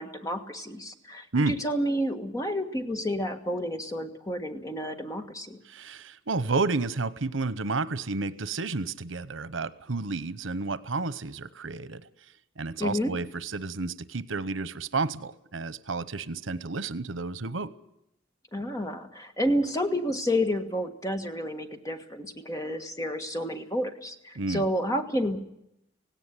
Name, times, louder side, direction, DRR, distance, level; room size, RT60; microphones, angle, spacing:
voice 1, 0.0-5.6 12.8-13.1 18.5-25.4, equal, 15° left, 6 dB, 1.6 m, -30 dB
voice 2, 5.7-12.0 12.6-17.7 24.4-24.6, right 3 dB, 90° right, 16 dB, 0.9 m, -31 dB
17.5 x 17.5 x 9.8 m, 0.80 s
head